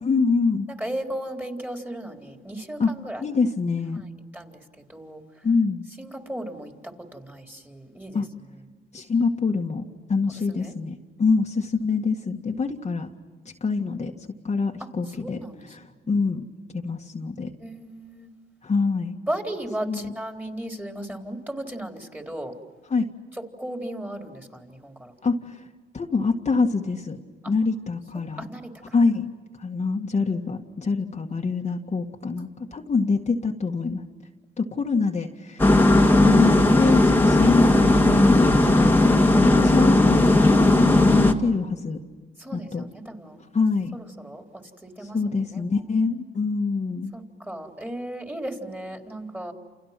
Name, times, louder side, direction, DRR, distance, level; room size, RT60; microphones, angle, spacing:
voice 1, 0.0-0.7 2.8-2.9 3.2-4.0 5.4-5.9 8.1-8.3 8.9-13.1 13.6-14.1 14.4-16.4 16.7-17.5 18.6-19.2 19.9-20.1 22.9-23.1 25.2-25.6 25.9-27.2 27.5-28.5 28.8-29.3 29.6-34.0 34.6-42.0 42.5-42.8 43.5-43.9 45.0-47.1, left 4 dB, 35° left, 1 dB, 1.9 m, -25 dB
voice 2, 0.8-3.2 3.9-4.1 4.3-4.6 4.9-5.2 6.0-6.7 7.1-8.2 10.5-10.7 15.2-15.6 17.6-18.3 19.3-22.5 23.6-25.1 27.4-27.5 28.4-28.9 35.8-36.3 42.4-43.4 43.9-45.2 45.5-45.7 47.1-49.5, right 1 dB, 10° right, 3 dB, 4.1 m, -36 dB
sound 1, 35.6-41.3, left 2 dB, 10° left, 2.2 m, -17 dB
29.5 x 29.0 x 6.0 m, 1.4 s
cardioid pair, 90°, 20 cm